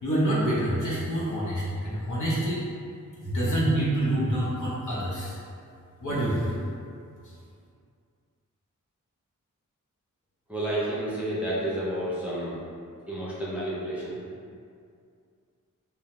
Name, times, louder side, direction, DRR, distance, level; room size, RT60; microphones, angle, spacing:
voice 1, 0.0-2.6 3.2-5.4 6.0-6.5, right 1 dB, 65° left, -8 dB, 0.9 m, -26 dB
voice 2, 10.5-12.6 13.1-14.2, right 1 dB, 5° right, -9 dB, 0.7 m, -30 dB
2.6 x 2.1 x 3.1 m, 2.3 s
wide cardioid pair, 65°, 33 cm